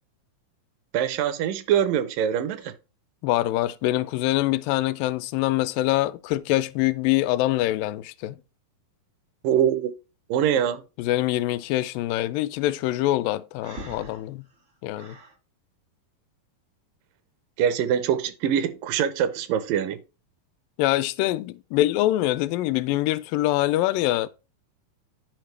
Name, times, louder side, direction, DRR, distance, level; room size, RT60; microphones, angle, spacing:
voice 1, 0.9-2.7 9.4-9.9 10.3-10.8 17.6-20.0, right 9 dB, 80° right, 2.4 m, -23 dB
voice 2, 3.2-8.4 11.0-14.5 14.8-15.2 20.8-24.3, left 16 dB, 85° left, 2.2 m, -24 dB
Breathing, 13.6-15.4, right 1 dB, 55° right, 0.8 m, -42 dB
9.3 x 5.1 x 3.2 m
omnidirectional pair, 3.9 m